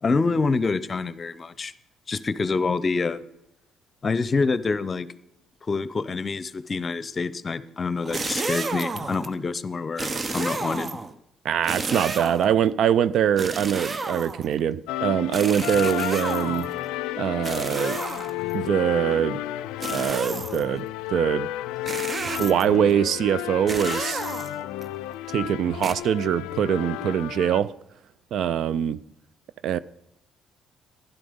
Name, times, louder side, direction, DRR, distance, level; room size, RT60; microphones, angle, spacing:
voice 1, 0.0-1.7 2.1-3.2 4.0-5.1 5.7-11.0, left 4 dB, 40° left, 0.7 m, -26 dB
sound 1, 8.0-9.3 10.0-11.1 11.6-12.6 13.4-14.6 15.3-16.8 17.4-18.5 19.8-20.7 21.9-22.8 23.7-24.8 25.8-25.9, right 3 dB, 35° right, 0.9 m, -31 dB
voice 2, 11.4-16.7 17.2-18.0 18.5-19.4 19.9-21.5 22.2-24.2 25.3-27.7 28.3-29.0 29.6-29.8, right 9 dB, 65° right, 0.4 m, -23 dB
sound 2, 14.9-27.6, left 15 dB, 80° left, 0.4 m, -32 dB
12.0 x 11.0 x 5.2 m
hypercardioid pair, 55°, 0 cm